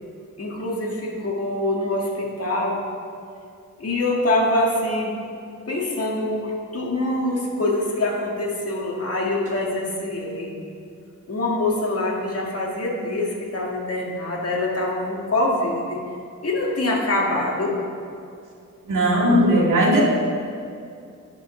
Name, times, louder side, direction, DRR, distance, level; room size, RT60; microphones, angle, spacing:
voice 1, 0.4-2.8 3.8-5.1 5.7-10.6 11.3-16.0 16.4-17.8, left 2 dB, 50° left, -2 dB, 1.8 m, -24 dB
voice 2, 18.9-20.0, equal, 75° right, -3 dB, 2.1 m, -17 dB
11.0 x 5.4 x 6.6 m, 2.5 s
wide cardioid pair, 140°, 32 cm